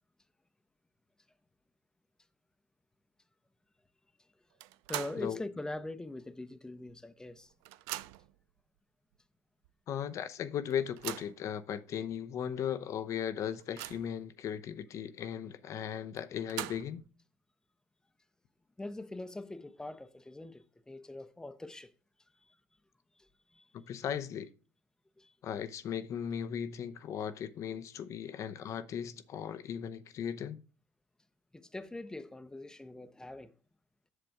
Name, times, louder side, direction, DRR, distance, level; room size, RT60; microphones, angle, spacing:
sound 1, 4.6-5.3 5.7-5.8 6.9-7.0 7.3-8.4 9.1-9.2 9.6-9.7 10.7-11.4 12.1-12.2 12.6-12.7 13.2-14.2 16.2-17.1, right 16 dB, 80° right, 0.4 m, -42 dB
voice 1, 4.9-7.5 18.8-21.9 22.4-22.6 23.2-23.7 25.2-25.3 31.5-33.5, left 2 dB, 10° left, 0.7 m, -43 dB
voice 2, 9.9-17.0 23.7-24.5 25.4-30.6, left 8 dB, 55° left, 0.7 m, -37 dB
7.8 x 6.8 x 3.5 m
supercardioid pair, 80°, 6 cm